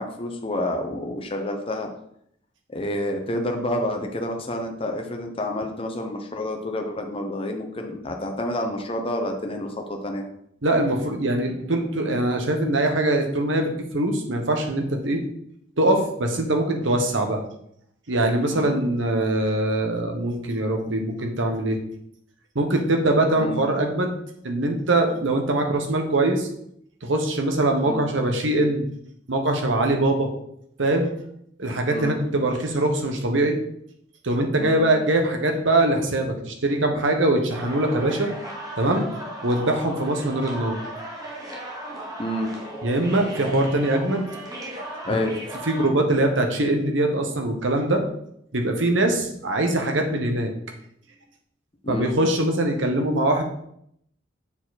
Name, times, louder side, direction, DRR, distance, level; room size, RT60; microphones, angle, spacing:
voice 1, 0.0-1.9 2.7-10.2 18.5-18.8 23.4-23.6 27.8-28.0 31.9-32.2 34.6-34.8 42.2-42.5 45.0-45.3 51.8-52.1, left 1 dB, 30° left, 3 dB, 0.7 m, -29 dB
voice 2, 10.6-15.2 15.8-17.4 18.1-21.8 22.5-24.1 24.4-26.5 27.0-28.8 29.3-30.3 30.8-31.1 31.6-33.6 34.2-38.3 38.8-39.1 39.4-40.8 42.8-44.3 45.7-48.0 48.5-50.5 51.9-53.4, right 1 dB, 75° right, 3 dB, 1.2 m, -22 dB
sound 1, 37.5-45.9, right 1 dB, 20° right, 1.1 m, -36 dB
7.1 x 4.6 x 4.1 m, 0.72 s
head